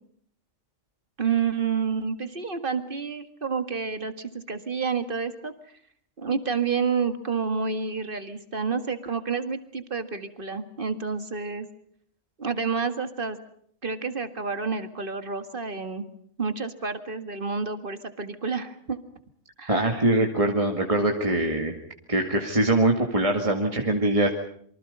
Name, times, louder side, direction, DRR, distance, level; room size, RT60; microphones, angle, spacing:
voice 1, 1.2-5.5 6.2-11.7 12.4-13.4 13.8-16.0 16.4-19.0 19.6-19.9, right 5 dB, 40° right, 9 dB, 2.1 m, -29 dB
voice 2, 19.7-21.8 22.1-24.3, right 1 dB, 25° right, 2 dB, 2.3 m, -23 dB
27.5 x 24.5 x 5.4 m, 0.63 s
omnidirectional pair, 1.4 m